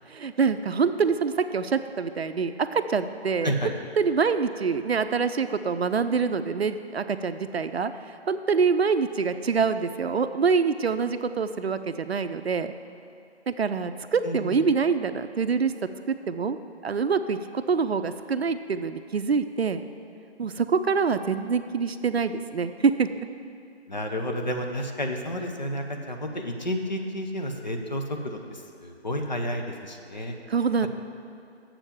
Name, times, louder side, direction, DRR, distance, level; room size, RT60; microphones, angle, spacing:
voice 1, 0.1-12.7 13.5-15.7 16.1-16.6 16.8-19.8 20.4-23.3 30.5-30.9, right 5 dB, 70° right, 10 dB, 0.5 m, -25 dB
voice 2, 3.4-3.7 14.2-14.7 23.9-30.4, equal, 40° left, 3 dB, 0.8 m, -31 dB
7.4 x 7.0 x 7.2 m, 2.7 s
figure-of-eight pair, 175°, 33 cm